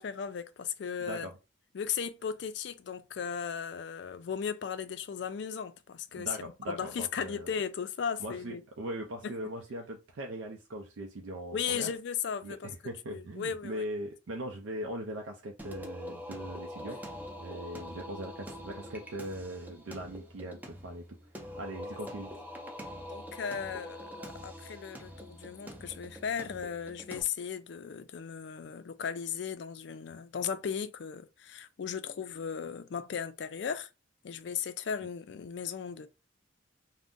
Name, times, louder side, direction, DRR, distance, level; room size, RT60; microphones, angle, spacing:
voice 1, 0.0-1.3 1.7-6.3 6.7-8.6 9.2-9.3 11.5-12.7 13.1-13.8 23.0-33.9 34.2-36.1, left 7 dB, 60° left, 0.3 m, -36 dB
voice 2, 1.0-1.3 6.1-7.5 8.2-11.9 12.4-17.0 17.4-21.2 21.6-22.3, right 1 dB, 85° right, 0.5 m, -40 dB
Singing, 15.6-27.2, equal, 10° right, 0.4 m, -44 dB
2.5 x 2.1 x 3.6 m
head